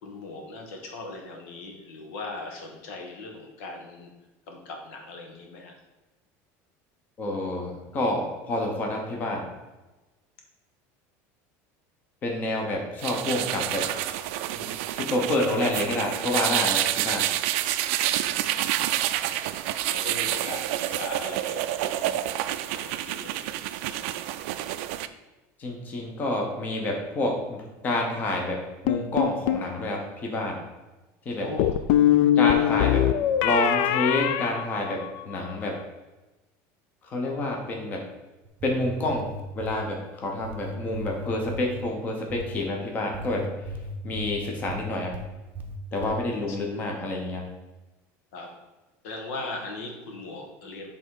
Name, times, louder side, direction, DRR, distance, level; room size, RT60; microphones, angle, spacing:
voice 1, 0.0-4.1 4.5-5.7 18.1-18.6 19.9-22.3 22.7-23.5 31.4-31.7 32.3-32.8 46.5-46.6 48.3-48.6 49.0-50.9, left 2 dB, 90° left, 2 dB, 1.5 m, -39 dB
voice 2, 7.2-9.5 12.2-14.3 14.6-17.3 25.6-28.6 28.8-30.6 31.2-31.5 32.4-33.0 33.4-35.7 37.1-38.0 38.6-39.2 39.5-43.4 44.0-45.1 45.9-47.4, left 1 dB, 25° left, 1 dB, 0.9 m, -28 dB
sound 1, 13.0-25.1, right 13 dB, 70° right, 0.4 m, -28 dB
sound 2, 28.9-29.7 31.6-35.4, left 11 dB, 55° left, 0.4 m, -22 dB
sound 3, 38.4-39.9 40.4-41.8 42.3-42.7 43.1-45.3 45.5-46.2, equal, 25° right, 0.7 m, -36 dB
7.9 x 3.5 x 4.7 m, 1.1 s
cardioid pair, 180°, 7 cm